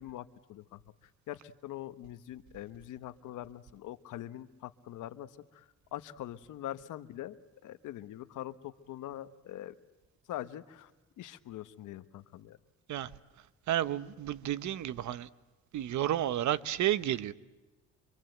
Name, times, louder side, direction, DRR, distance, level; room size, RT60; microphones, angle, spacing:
voice 1, 0.0-7.4 7.6-9.7 10.3-10.9 11.2-12.6, left 13 dB, 85° left, 1.1 m, -43 dB
voice 2, 13.7-15.3 15.7-17.3, right 12 dB, 70° right, 1.0 m, -31 dB
26.0 x 25.5 x 7.9 m
cardioid pair, 90°, 30 cm